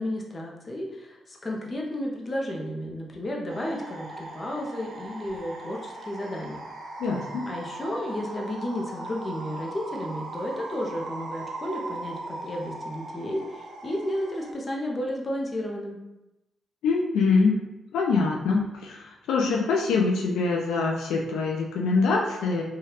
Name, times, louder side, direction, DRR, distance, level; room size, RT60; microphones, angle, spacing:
voice 1, 0.0-6.6 7.5-16.0, left 1 dB, 35° left, 0 dB, 0.6 m, -32 dB
sound 1, 3.5-14.5, right 2 dB, 80° right, 0.5 m, -39 dB
voice 2, 7.0-7.5 16.8-17.6 17.9-22.6, left 4 dB, 90° left, -1 dB, 0.3 m, -24 dB
3.2 x 2.3 x 2.9 m, 0.95 s
cardioid pair, 70°, 0 cm